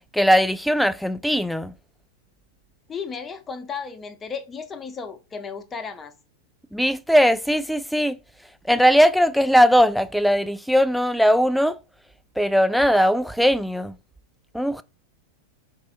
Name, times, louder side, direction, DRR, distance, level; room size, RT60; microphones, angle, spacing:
voice 1, 0.1-1.7 6.7-8.2 8.7-11.8 12.4-14.0 14.5-14.8, equal, ahead, 0.3 m, -19 dB
voice 2, 2.9-6.1, left 5 dB, 20° left, 0.7 m, -34 dB
4.6 x 4.1 x 2.5 m
figure-of-eight pair, 90°, 0 cm